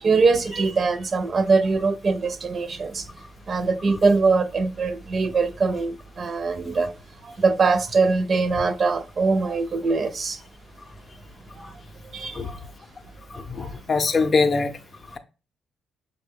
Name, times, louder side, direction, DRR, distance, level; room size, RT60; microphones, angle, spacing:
voice 1, 0.0-3.0 3.5-6.9 7.2-10.4 11.6-11.7 12.1-12.5 13.6-13.7, right 4 dB, 45° right, 0.4 m, -22 dB
voice 2, 13.3-14.7, left 4 dB, 40° left, 0.5 m, -22 dB
5.9 x 2.1 x 3.5 m
cardioid pair, 85°, 0 cm